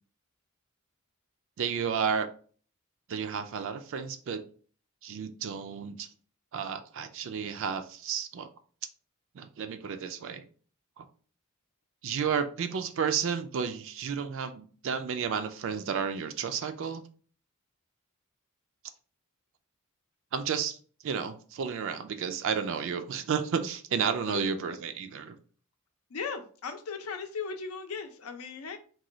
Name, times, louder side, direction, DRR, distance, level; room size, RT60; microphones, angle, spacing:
voice 1, 1.6-2.3 3.1-4.5 5.0-6.1 6.5-8.5 9.3-10.4 11.0-11.1 12.0-17.0 20.3-20.8 21.0-25.4, right 6 dB, 65° right, 0.4 m, -32 dB
voice 2, 24.3-24.6 26.1-28.8, left 5 dB, 80° left, 0.6 m, -37 dB
3.0 x 2.2 x 3.8 m
head